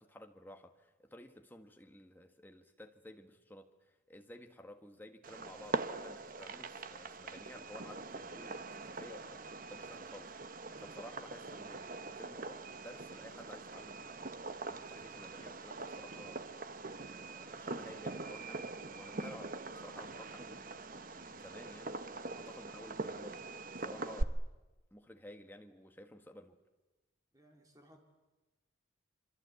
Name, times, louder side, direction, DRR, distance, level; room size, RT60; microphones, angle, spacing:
voice 1, 0.0-9.4 9.7-14.3 14.6-16.5 17.0-22.0 22.3-24.4 24.9-26.6, left 1 dB, 10° left, 5 dB, 1.6 m, -54 dB
Fireworks, 5.2-24.2, right 3 dB, 40° right, 1.0 m, -43 dB
voice 2, 10.7-11.3 11.6-11.8 27.3-28.0, right 1 dB, 20° right, 2 dB, 3.7 m, -61 dB
26.5 x 25.0 x 8.3 m, 1.1 s
head